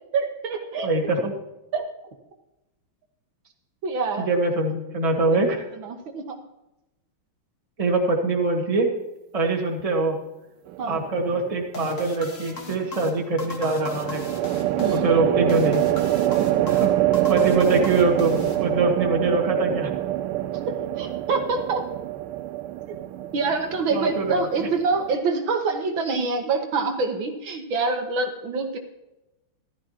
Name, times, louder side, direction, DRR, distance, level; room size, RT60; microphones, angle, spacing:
voice 1, 0.1-0.9 1.7-1.8 3.8-4.3 5.8-6.4 10.8-11.0 14.8-15.1 16.4-16.6 20.5-21.8 23.3-28.8, right 4 dB, 65° right, 5 dB, 1.7 m, -26 dB
voice 2, 0.8-1.3 4.2-5.6 7.8-8.9 9.3-10.2 10.9-14.2 14.9-15.8 16.7-16.9 17.3-19.9 23.9-24.7, right 3 dB, 15° right, 1 dB, 1.5 m, -23 dB
sound 1, 10.7-11.2 13.8-25.2, right 14 dB, 85° right, 1.5 m, -25 dB
sound 2, 11.7-19.1, left 2 dB, 40° left, 1.6 m, -38 dB
15.0 x 12.5 x 2.9 m, 0.95 s
omnidirectional pair, 2.4 m